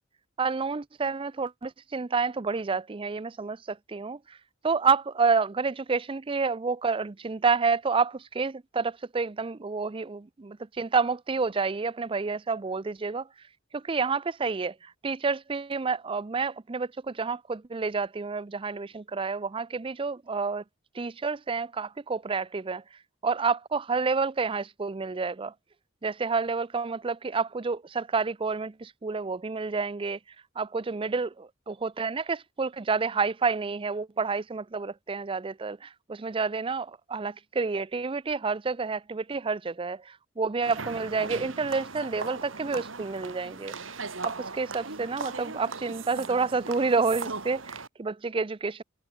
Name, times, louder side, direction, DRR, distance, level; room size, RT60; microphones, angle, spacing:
voice 1, 0.4-4.4 4.6-13.3 13.7-20.6 20.9-22.8 23.2-25.5 26.0-30.2 30.6-43.7 44.2-48.8, right 4 dB, 25° right, 0.5 m, -29 dB
sound 1, 40.6-47.9, right 4 dB, 80° right, 3.2 m, -38 dB
head